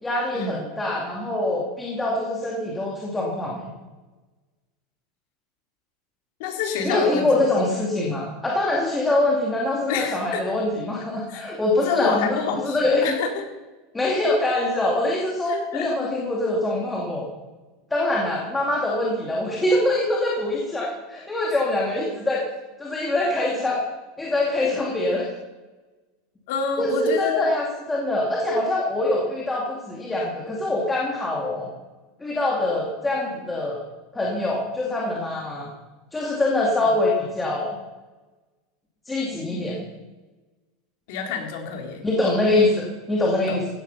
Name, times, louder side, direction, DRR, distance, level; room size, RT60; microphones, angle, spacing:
voice 1, 0.0-3.7 6.8-13.2 13.9-17.3 17.9-22.4 22.8-23.8 24.2-25.3 26.8-31.7 32.2-33.8 34.1-35.7 36.1-37.8 39.1-39.8 42.0-43.7, left 2 dB, 10° left, -3 dB, 2.4 m, -24 dB
voice 2, 6.4-7.3 9.9-10.5 11.3-11.4 11.8-13.4 15.5-15.9 26.5-27.5 36.8-36.9 41.1-42.0 43.5-43.6, left 5 dB, 65° left, 1 dB, 3.9 m, -27 dB
16.5 x 12.5 x 5.7 m, 1.2 s
supercardioid pair, 165°, 0 cm